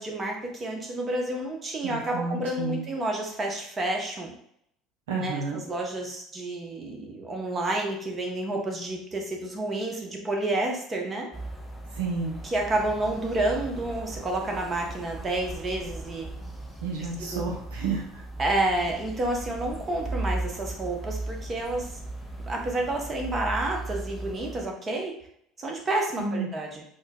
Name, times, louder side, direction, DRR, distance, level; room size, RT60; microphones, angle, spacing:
voice 1, 0.0-4.3 5.1-11.3 12.4-16.3 17.2-17.5 18.4-21.9 22.5-25.1 25.6-26.8, right 2 dB, 30° right, 1 dB, 0.8 m, -30 dB
voice 2, 1.8-2.9 5.1-5.6 11.9-12.3 16.8-18.2 26.2-26.5, right 4 dB, 80° right, -2 dB, 0.5 m, -31 dB
sound 1, 11.3-24.6, right 2 dB, ahead, 0.8 m, -37 dB
4.3 x 2.1 x 2.2 m, 0.70 s
hypercardioid pair, 65°, 0 cm